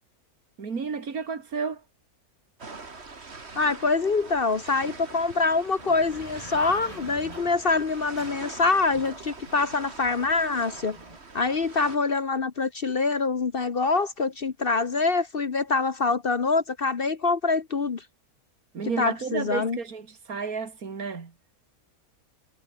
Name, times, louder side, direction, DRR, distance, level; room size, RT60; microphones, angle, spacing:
voice 1, 0.6-1.8 18.7-21.3, right 5 dB, 70° right, 2.6 m, -32 dB
sound 1, 2.6-12.0, right 4 dB, 45° right, 2.6 m, -43 dB
voice 2, 3.6-11.0 11.3-18.0 19.0-19.8, left 4 dB, 40° left, 1.1 m, -25 dB
sound 2, 3.8-3.9 4.7-11.2, right 1 dB, 20° right, 6.4 m, -48 dB
omnidirectional pair, 1.6 m